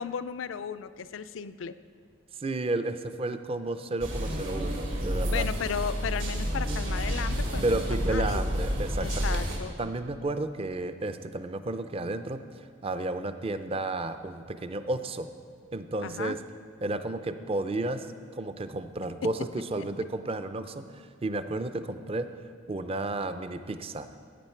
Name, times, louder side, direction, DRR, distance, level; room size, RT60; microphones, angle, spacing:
voice 1, 0.0-1.7 5.3-8.4 9.0-9.8 16.0-16.4, left 7 dB, 70° left, 13 dB, 0.4 m, -35 dB
voice 2, 2.4-5.5 7.6-9.5 9.8-15.3 15.7-16.4 16.8-18.1 18.3-22.3 22.7-24.1, right 2 dB, 30° right, 10 dB, 0.5 m, -32 dB
sound 1, 4.0-9.6, equal, 70° right, 2.0 m, -30 dB
15.5 x 8.9 x 4.5 m, 2.1 s
head